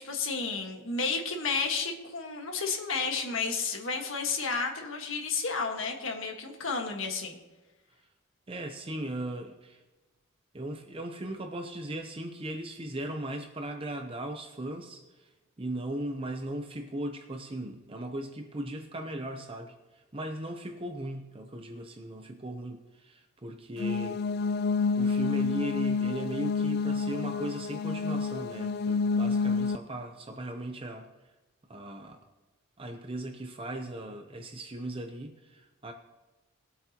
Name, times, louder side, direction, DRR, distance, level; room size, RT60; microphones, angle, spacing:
voice 1, 0.0-7.4, left 4 dB, 70° left, 3 dB, 1.6 m, -32 dB
voice 2, 8.5-9.8 10.5-24.3 25.0-31.3 31.7-32.3 32.8-35.9, right 1 dB, 25° right, 5 dB, 0.7 m, -38 dB
sound 1, 23.8-29.8, left 4 dB, 50° left, 0.3 m, -29 dB
21.0 x 8.2 x 2.9 m, 1.2 s
head